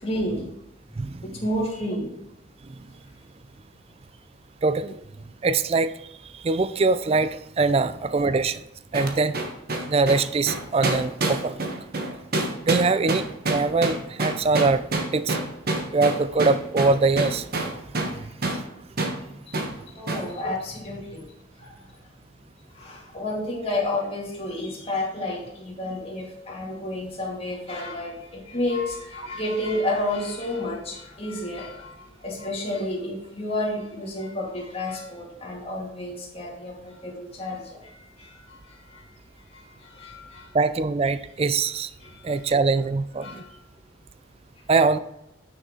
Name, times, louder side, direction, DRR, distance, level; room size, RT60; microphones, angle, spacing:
voice 1, 0.0-0.4 1.2-2.1 7.8-7.9 19.9-21.2 21.6-21.7 22.8-31.9 32.2-38.3 38.9-39.1 39.5-40.5 42.0-42.2 43.2-43.5, left 1 dB, 30° left, -3 dB, 2.3 m, -30 dB
voice 2, 4.6-4.9 5.4-5.9 6.4-8.6 8.9-9.3 9.9-11.6 12.7-14.8 15.1-15.4 15.9-17.4 20.4-20.5 40.5-41.9 42.2-43.4 44.7-45.0, right 3 dB, 30° right, 13 dB, 0.3 m, -22 dB
sound 1, 8.9-18.2 18.4-18.6 19.0-19.2 19.5-19.7 20.1-20.3, right 2 dB, 50° right, 1.2 m, -27 dB
9.2 x 6.4 x 3.9 m, 0.85 s
head